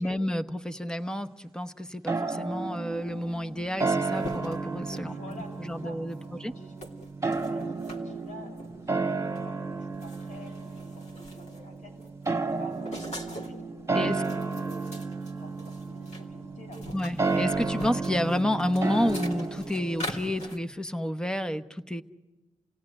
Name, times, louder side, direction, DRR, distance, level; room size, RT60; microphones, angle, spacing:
voice 1, 0.0-5.1 5.6-6.5 13.9-14.2 16.9-22.0, left 1 dB, 5° left, 8 dB, 1.0 m, -30 dB
sound 1, 2.1-20.5, right 3 dB, 20° right, 1.8 m, -32 dB
sound 2, 3.3-3.4 3.6-5.6 6.1-6.3 6.8-8.0 8.6-8.8 9.3-9.5 9.8-11.7 12.0-13.6 14.0-16.2 16.5-20.6, left 1 dB, 60° left, 3.1 m, -43 dB
voice 2, 5.0-6.9 7.4-11.9 12.4-13.6 14.2-17.0, left 1 dB, 75° left, 1 dB, 6.5 m, -49 dB
29.5 x 17.0 x 9.9 m, 1.2 s
cardioid pair, 90°, 13 cm